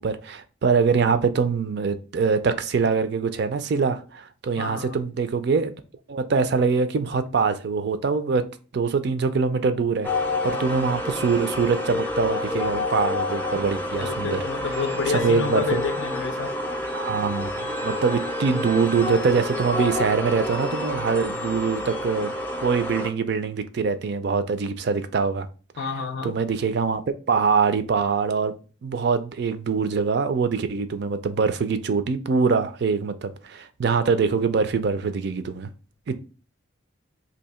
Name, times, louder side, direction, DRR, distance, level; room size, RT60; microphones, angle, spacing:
voice 1, 0.0-5.7 6.1-8.5 8.7-10.1 10.4-14.4 15.2-15.8 16.9-22.3 22.6-25.5 25.8-25.9 26.2-27.0 27.3-28.5 28.8-35.7 36.1-36.3, right 5 dB, 55° right, 0.4 m, -24 dB
voice 2, 4.6-5.0 13.9-16.5 25.8-26.3, left 4 dB, 65° left, 0.5 m, -29 dB
sound 1, 10.0-23.1, left 1 dB, 10° left, 0.4 m, -28 dB
2.7 x 2.6 x 4.2 m
head